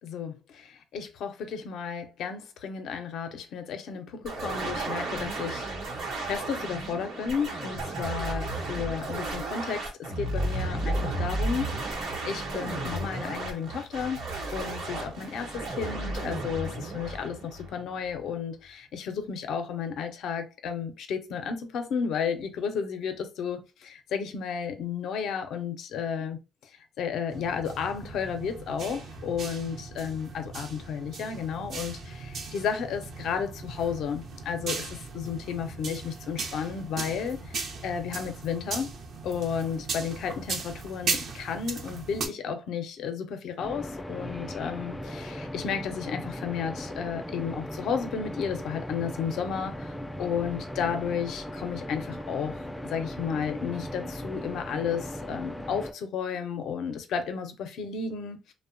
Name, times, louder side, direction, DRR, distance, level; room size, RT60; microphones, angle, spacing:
voice 1, 0.0-5.7 6.2-14.2 14.5-26.4 27.0-38.9 39.2-52.6 52.9-58.5, left 7 dB, 80° left, 0.5 m, -33 dB
sound 1, 4.2-18.1, right 2 dB, 90° right, 0.9 m, -33 dB
sound 2, 27.3-42.3, right 4 dB, 65° right, 0.5 m, -37 dB
sound 3, 43.6-55.9, equal, 10° left, 0.3 m, -38 dB
2.7 x 2.1 x 2.4 m
cardioid pair, 90°, 0 cm